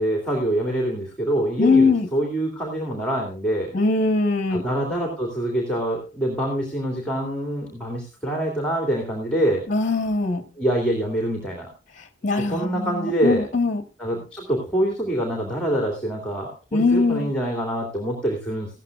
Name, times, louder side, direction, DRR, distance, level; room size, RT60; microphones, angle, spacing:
voice 1, 0.0-3.7 4.5-9.6 10.6-11.7 12.5-13.4 14.0-18.7, right 1 dB, 5° left, 2.5 m, -25 dB
voice 2, 1.6-2.1 3.7-4.6 9.7-10.4 12.2-13.8 16.7-17.3, left 3 dB, 40° left, 1.2 m, -21 dB
15.5 x 13.5 x 2.4 m
head